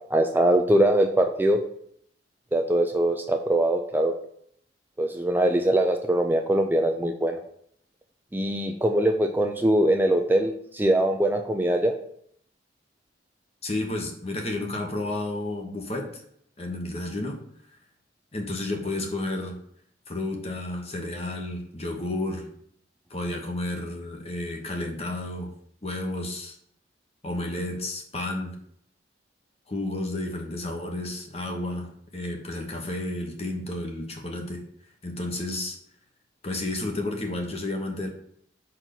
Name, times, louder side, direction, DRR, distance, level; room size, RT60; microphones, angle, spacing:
voice 1, 0.0-1.6 2.5-4.1 5.0-7.4 8.3-11.9, right 1 dB, 10° right, 4 dB, 0.5 m, -22 dB
voice 2, 13.6-16.2 16.6-17.4 18.3-19.6 20.1-22.5 23.1-25.5 25.8-26.6 27.2-28.6 29.7-34.6 35.0-35.8 36.4-38.1, left 2 dB, 35° left, 2 dB, 1.2 m, -31 dB
5.2 x 4.6 x 6.0 m, 0.66 s
head